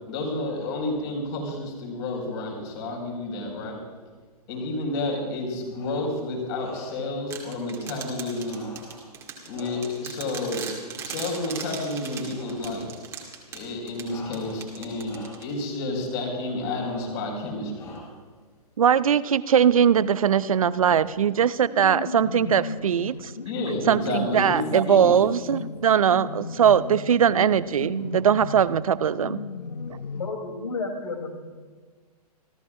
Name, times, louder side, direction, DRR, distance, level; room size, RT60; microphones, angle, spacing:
voice 1, 0.1-3.8 4.5-8.7 9.5-10.7 11.0-12.9 13.5-18.0 23.4-24.6 24.9-25.2, left 2 dB, 40° left, 1 dB, 5.0 m, -30 dB
sound 1, 5.6-6.2 6.5-7.2 8.4-10.2 11.3-12.0 12.3-12.8 14.0-14.8 15.0-15.6 16.7-17.3 17.7-18.3, left 3 dB, 20° left, 4.1 m, -47 dB
sound 2, 7.3-15.8, right 6 dB, 15° right, 2.0 m, -39 dB
voice 2, 18.8-23.3 23.9-29.4, right 8 dB, 60° right, 17 dB, 0.6 m, -21 dB
sound 3, 20.9-30.3, left 4 dB, 80° left, 0.7 m, -36 dB
voice 3, 30.2-31.4, left 3 dB, 55° left, 4 dB, 3.1 m, -31 dB
28.0 x 14.0 x 2.5 m, 1.5 s
figure-of-eight pair, 120°, 20 cm